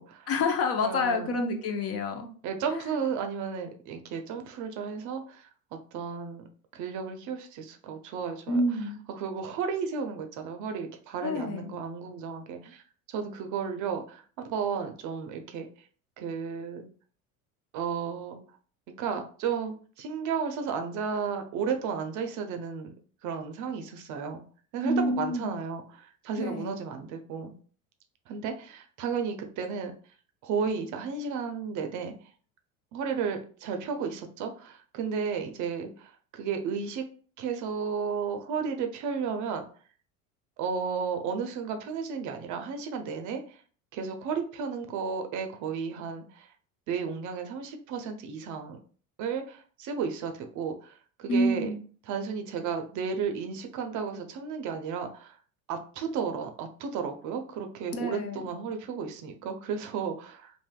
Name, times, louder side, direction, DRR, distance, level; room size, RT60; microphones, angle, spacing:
voice 1, 0.3-2.3 2.7-3.0 8.5-9.0 11.2-11.7 24.8-25.6 26.4-26.8 51.3-51.8 57.9-58.4, left 2 dB, 35° left, 5 dB, 0.6 m, -28 dB
voice 2, 0.8-1.4 2.4-6.4 6.7-8.6 9.1-12.8 13.1-15.7 16.2-16.8 17.7-18.4 19.0-22.9 23.2-24.4 24.7-27.5 28.3-29.9 30.4-32.1 32.9-37.0 37.4-39.6 40.6-43.6 43.9-46.5 46.9-48.8 49.2-50.9 51.2-51.7 52.1-55.4 55.7-60.5, right 6 dB, 45° right, 6 dB, 0.6 m, -33 dB
3.3 x 2.6 x 2.2 m, 0.42 s
hypercardioid pair, 80°, 41 cm